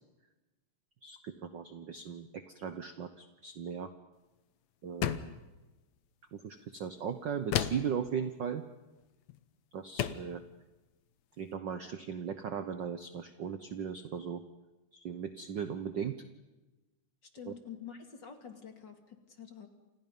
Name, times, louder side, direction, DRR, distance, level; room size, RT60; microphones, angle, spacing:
voice 1, 1.0-3.9 4.8-5.3 6.3-8.6 9.7-10.4 11.4-14.4 14.9-16.2 17.5-17.6, right 7 dB, 80° right, 9 dB, 1.0 m, -38 dB
sound 1, 5.0-5.4 7.5-8.0 9.3-9.4 10.0-10.3, left 11 dB, 70° left, 2.1 m, -32 dB
voice 2, 17.3-19.7, left 8 dB, 40° left, 5 dB, 2.6 m, -47 dB
29.5 x 27.0 x 5.4 m, 1.1 s
omnidirectional pair, 3.4 m